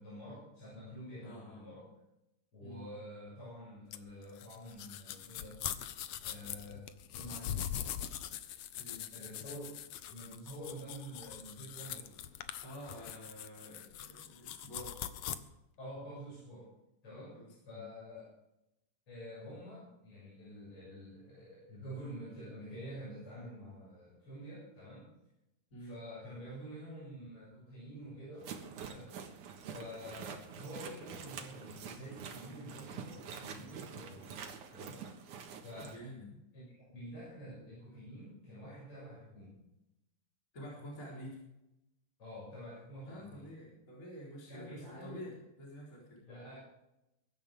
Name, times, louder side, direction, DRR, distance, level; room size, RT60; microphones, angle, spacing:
voice 1, 0.0-1.9 2.5-5.6 6.2-6.9 7.1-7.6 9.1-9.8 10.1-12.1 15.8-16.7 17.0-17.4 17.6-18.3 19.1-25.1 25.8-29.1 29.6-34.4 34.7-35.1 35.6-36.0 36.5-39.6 42.2-43.5 44.5-45.3 46.2-46.7, equal, 40° left, -8 dB, 8.1 m, -48 dB
voice 2, 1.2-1.7 2.6-2.9 8.8-9.1 12.6-15.1 17.3-17.8 25.7-26.0 35.8-36.4 40.5-41.4 43.0-46.2, equal, 25° left, -4 dB, 4.4 m, -49 dB
sound 1, 3.9-15.4, left 10 dB, 90° left, 1.2 m, -42 dB
sound 2, 28.4-36.0, right 7 dB, 75° right, 3.0 m, -46 dB
23.0 x 12.5 x 3.6 m, 0.88 s
omnidirectional pair, 3.6 m